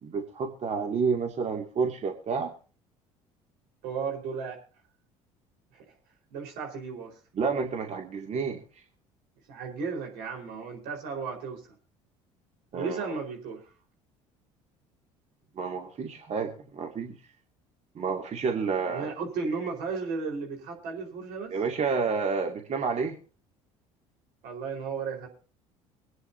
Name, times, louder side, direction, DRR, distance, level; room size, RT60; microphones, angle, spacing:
voice 1, 0.0-2.5 7.3-8.6 12.7-13.2 15.6-17.1 18.0-19.1 21.5-23.2, right 5 dB, 45° right, 3 dB, 2.4 m, -30 dB
voice 2, 3.8-4.6 5.7-5.8 6.3-7.2 9.5-11.7 12.7-13.7 18.8-21.6 24.4-25.3, right 5 dB, 70° right, 2 dB, 4.6 m, -34 dB
24.5 x 9.6 x 2.8 m, 0.37 s
hypercardioid pair, 65°, 16 cm